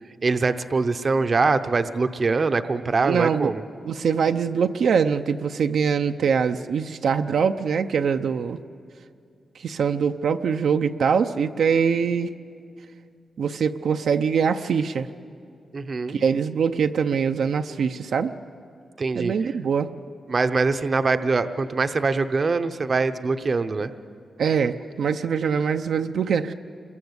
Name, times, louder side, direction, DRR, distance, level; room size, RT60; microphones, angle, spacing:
voice 1, 0.2-3.6 15.7-16.2 19.0-19.3 20.3-23.9, right 4 dB, 35° right, 10 dB, 0.7 m, -23 dB
voice 2, 3.0-3.5 3.8-8.6 9.6-12.3 13.4-15.1 16.1-18.3 19.1-19.9 24.4-26.5, right 6 dB, 70° right, 7 dB, 0.6 m, -23 dB
27.5 x 22.0 x 8.1 m, 2.4 s
wide cardioid pair, 165°, 0 cm